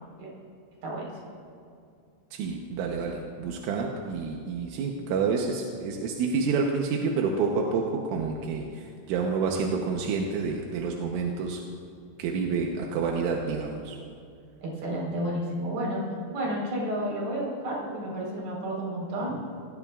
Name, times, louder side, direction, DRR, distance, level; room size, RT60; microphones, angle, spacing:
voice 1, 2.3-11.6 12.2-14.0, right 5 dB, 85° right, 0 dB, 3.5 m, -28 dB
voice 2, 14.6-16.0 16.3-19.3, right 1 dB, 50° right, -4 dB, 6.0 m, -31 dB
26.5 x 17.5 x 2.4 m, 2.4 s
omnidirectional pair, 5.4 m